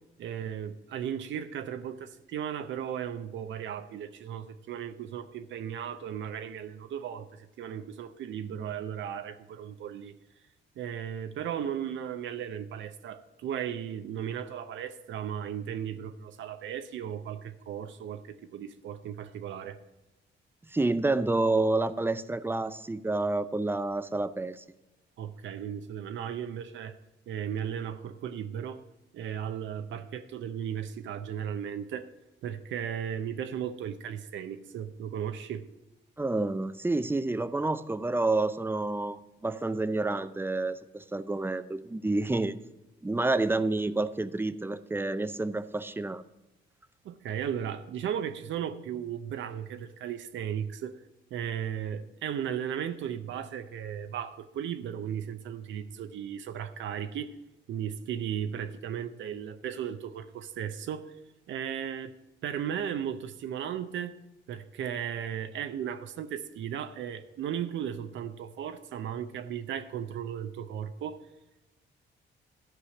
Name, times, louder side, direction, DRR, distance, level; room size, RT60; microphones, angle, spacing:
voice 1, 0.2-10.1 10.8-19.8 25.2-27.0 27.3-28.8 29.1-32.1 32.4-35.6 47.0-51.0 51.3-57.3 57.7-61.2 61.5-62.1 62.4-64.2 64.5-71.2, right 9 dB, 70° right, 0.7 m, -36 dB
voice 2, 20.7-24.6 36.2-42.5 43.0-46.2, right 2 dB, 10° right, 0.5 m, -29 dB
13.0 x 4.9 x 7.0 m
cardioid pair, 90°, 20 cm